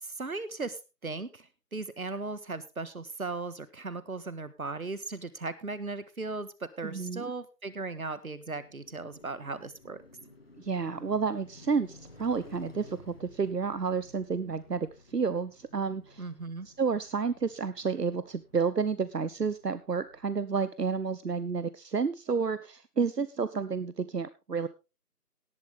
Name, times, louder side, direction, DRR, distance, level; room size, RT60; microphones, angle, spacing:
voice 1, 0.0-10.0 16.2-16.7, right 3 dB, 60° right, 15 dB, 1.6 m, -37 dB
voice 2, 6.8-7.2 10.6-16.2 16.7-24.7, right 5 dB, 85° right, 14 dB, 1.0 m, -30 dB
Car passing by, 8.4-20.6, left 3 dB, 40° left, 2.5 m, -55 dB
18.0 x 8.1 x 3.5 m, 0.28 s
figure-of-eight pair, 170°, 47 cm